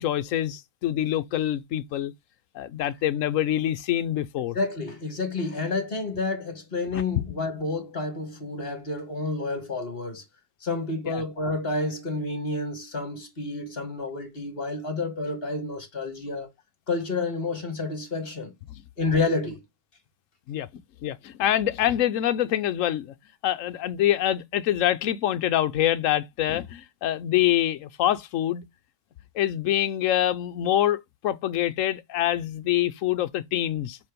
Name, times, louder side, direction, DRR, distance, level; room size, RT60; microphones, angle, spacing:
voice 1, 0.0-2.1 2.5-4.6 11.1-11.2 20.5-20.7 21.0-23.1 23.4-28.6 29.3-34.0, left 12 dB, 60° left, 0.9 m, -25 dB
voice 2, 4.4-10.2 10.6-16.5 16.9-18.5 19.0-19.6, left 3 dB, 35° left, 1.9 m, -29 dB
7.2 x 3.4 x 5.1 m
omnidirectional pair, 1.7 m